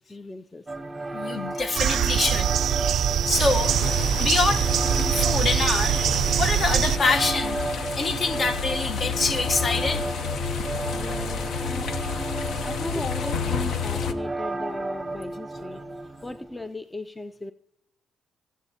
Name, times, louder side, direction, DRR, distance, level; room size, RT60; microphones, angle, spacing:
voice 1, 0.1-0.6 11.0-11.9 12.6-15.8 16.2-17.5, left 1 dB, 15° left, 0.4 m, -37 dB
sound 1, 0.7-16.7, right 2 dB, 15° right, 0.8 m, -33 dB
voice 2, 1.1-2.5 3.0-3.8 4.2-6.1 6.4-7.6 8.0-10.0, left 3 dB, 45° left, 1.1 m, -26 dB
sound 2, 1.8-7.0, right 10 dB, 70° right, 0.3 m, -23 dB
sound 3, 3.3-14.1, left 5 dB, 70° left, 0.8 m, -30 dB
21.5 x 7.3 x 2.8 m
cardioid pair, 85°, 0 cm